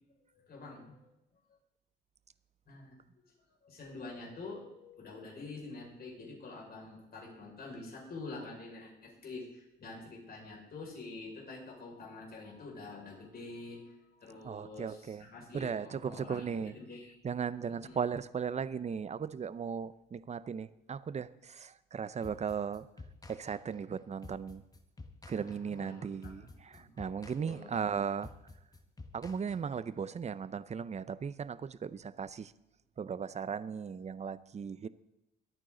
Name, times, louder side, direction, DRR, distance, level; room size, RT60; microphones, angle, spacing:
voice 1, 0.3-1.1 2.7-3.0 3.5-17.2 17.7-18.0 25.3-27.0 27.4-27.7, left 3 dB, 50° left, -1 dB, 5.7 m, -47 dB
voice 2, 14.4-15.2 15.5-16.7 17.2-22.9 23.3-24.6 25.3-28.3 29.1-32.5 33.0-34.9, right 6 dB, 35° right, 16 dB, 0.7 m, -37 dB
sound 1, 22.2-30.0, left 3 dB, 20° left, 1.4 m, -51 dB
22.5 x 9.2 x 3.9 m, 0.92 s
cardioid pair, 90°, 20 cm